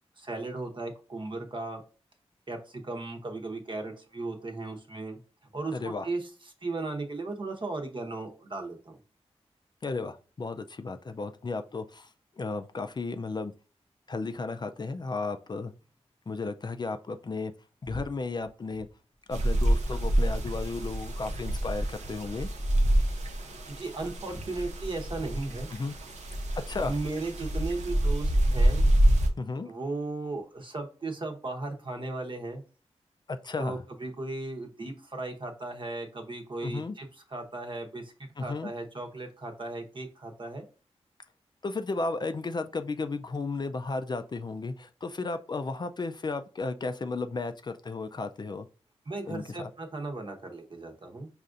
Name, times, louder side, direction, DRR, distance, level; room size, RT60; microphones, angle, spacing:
voice 1, 0.2-1.8 2.5-5.2 5.5-6.3 6.6-9.0 23.7-25.7 26.7-28.9 29.6-32.6 33.6-38.1 38.4-40.6 49.1-51.3, right 2 dB, 45° right, 4 dB, 0.9 m, -36 dB
voice 2, 5.7-6.1 9.8-12.1 12.4-13.5 14.1-15.7 16.3-17.5 17.8-18.9 19.3-22.5 25.7-26.0 26.7-27.0 29.4-29.7 33.3-33.8 36.6-36.9 38.4-38.7 41.6-48.7 49.3-49.7, left 3 dB, 40° left, 8 dB, 0.4 m, -34 dB
sound 1, 17.9-18.1 18.3-18.9 19.3-19.4 19.6-20.6 21.2-21.4 21.7-21.8 22.0-23.6 24.0-25.4, equal, 20° right, 0.9 m, -44 dB
sound 2, 19.3-29.3, right 1 dB, 90° right, 0.6 m, -27 dB
5.4 x 2.4 x 2.5 m, 0.35 s
cardioid pair, 65°, 11 cm